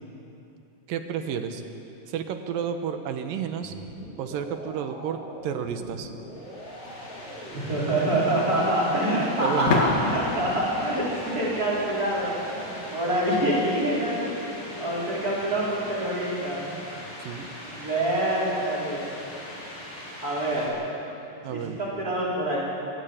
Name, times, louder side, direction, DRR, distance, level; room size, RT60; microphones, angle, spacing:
voice 1, 0.9-1.6 2.1-3.7 4.2-6.1 9.2-9.8 17.2-17.5 21.4-21.8, right 8 dB, 85° right, 7 dB, 2.9 m, -31 dB
sound 1, 3.6-16.4, left 1 dB, ahead, 4.7 m, -42 dB
sound 2, 6.3-20.7, left 1 dB, 60° left, 6.2 m, -41 dB
sound 3, 6.7-6.8 9.7-12.3, left 3 dB, 75° left, 3.6 m, -29 dB
voice 2, 7.5-12.6 12.9-16.7 17.6-19.1 20.2-20.8 21.5-22.6, right 1 dB, 25° right, -6 dB, 5.6 m, -26 dB
24.5 x 15.0 x 8.3 m, 2.9 s
omnidirectional pair, 3.9 m